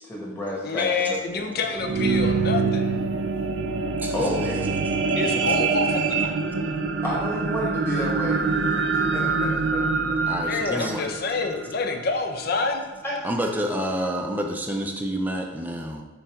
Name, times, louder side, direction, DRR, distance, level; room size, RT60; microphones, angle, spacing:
voice 1, 0.0-1.7 4.1-4.7 7.0-8.9 9.1-10.2 13.0-13.2, equal, 15° left, -5 dB, 1.6 m, -31 dB
voice 2, 0.6-3.0 5.2-6.3 10.5-12.8, left 4 dB, 50° left, 4 dB, 0.7 m, -27 dB
sound 1, 1.5-12.0 12.6-12.7, right 4 dB, 60° right, 0.4 m, -25 dB
voice 3, 4.0-4.5 10.3-11.0 13.2-16.0, equal, 10° right, 2 dB, 0.5 m, -28 dB
6.9 x 4.1 x 3.7 m, 1.1 s
head